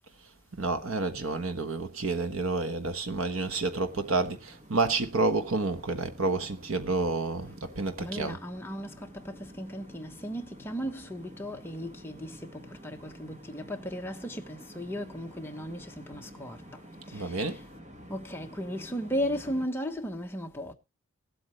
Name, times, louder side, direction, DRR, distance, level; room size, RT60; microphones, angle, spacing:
voice 1, 0.6-8.4 17.1-17.6, right 3 dB, 75° right, 1.3 m, -29 dB
sound 1, 3.0-19.7, equal, 35° right, 1.8 m, -50 dB
voice 2, 8.0-16.6 17.1-17.6 18.1-20.7, equal, 10° left, 1.2 m, -36 dB
18.5 x 8.2 x 3.2 m
head